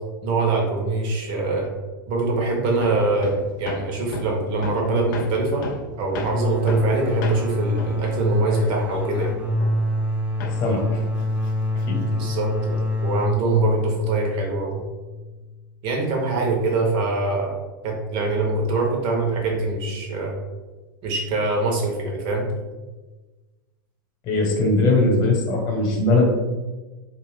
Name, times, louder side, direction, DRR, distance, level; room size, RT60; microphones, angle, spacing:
voice 1, 0.2-1.7 2.1-5.7 6.0-9.3 12.2-14.8 15.8-17.6 17.8-20.4 21.0-22.5, right 3 dB, 45° right, 0 dB, 0.9 m, -23 dB
Hammer, 2.8-10.1 10.4-12.2, left 5 dB, 60° left, 0.4 m, -36 dB
sound 1, 6.1-15.6, left 1 dB, 15° right, 0.3 m, -26 dB
voice 2, 10.6-11.0 11.9-12.1 24.3-26.4, left 2 dB, 40° left, 0 dB, 1.0 m, -20 dB
2.5 x 2.5 x 3.5 m, 1.2 s
hypercardioid pair, 110°, 12 cm